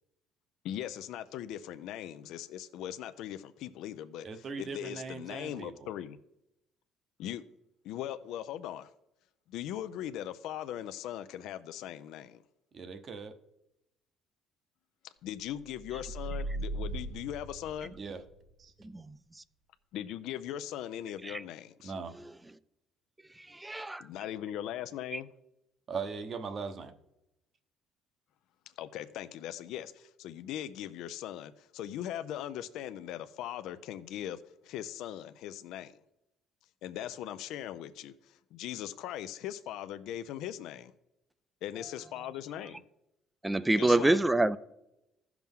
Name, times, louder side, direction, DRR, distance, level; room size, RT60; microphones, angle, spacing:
voice 1, 0.6-6.2 7.2-7.4 7.8-8.9 9.5-12.4 15.2-17.9 19.9-21.9 24.0-25.3 28.8-36.0 36.8-40.9 41.6-42.8 43.8-44.2, left 11 dB, 75° left, 0.4 m, -40 dB
voice 2, 4.2-5.9 12.7-13.3 18.0-18.2 18.6-18.7 21.8-22.1 25.9-26.9, right 5 dB, 40° right, 0.9 m, -39 dB
sound 1, 15.7-18.3, right 2 dB, 75° right, 1.4 m, -38 dB
voice 3, 23.6-24.0 25.1-25.2 43.4-44.6, right 2 dB, 10° right, 0.4 m, -26 dB
15.0 x 5.9 x 3.6 m
cardioid pair, 125°, 0 cm